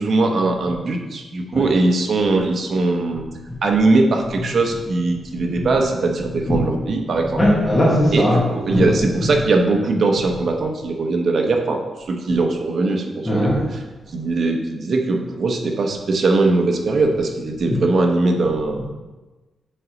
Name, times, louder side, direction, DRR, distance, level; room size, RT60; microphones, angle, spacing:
voice 1, 0.0-3.3 3.6-7.4 8.1-11.8 12.1-13.8 14.1-18.8, right 3 dB, 55° right, 3 dB, 1.0 m, -20 dB
voice 2, 7.4-8.4 8.7-8.9 13.3-13.6, equal, 20° left, -6 dB, 1.7 m, -18 dB
7.6 x 4.0 x 5.1 m, 1.2 s
wide cardioid pair, 140°, 0 cm